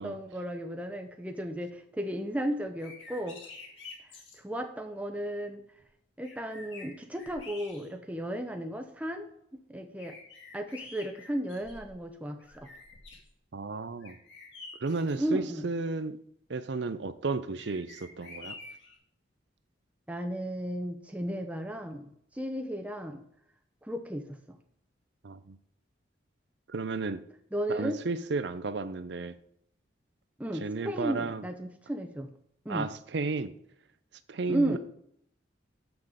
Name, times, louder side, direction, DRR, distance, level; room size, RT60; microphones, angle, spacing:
voice 1, 0.0-3.4 4.3-5.6 6.2-9.3 9.7-10.2 10.5-12.7 15.2-15.7 20.1-23.2 23.8-24.4 27.5-28.0 30.4-32.3 32.6-32.9 34.5-34.8, right 1 dB, 5° right, 0.6 m, -34 dB
sound 1, 2.7-4.4 5.8-5.9 6.2-8.2 8.7-8.8 10.0-12.0 12.4-13.3 14.0-15.2 17.5-19.0, left 3 dB, 75° left, 2.0 m, -48 dB
voice 2, 13.5-14.2 14.8-16.2 16.5-18.6 25.2-25.6 26.7-27.2 27.7-29.4 30.5-31.5 32.7-33.5 34.3-34.8, right 3 dB, 65° right, 0.5 m, -33 dB
7.2 x 6.1 x 5.0 m
head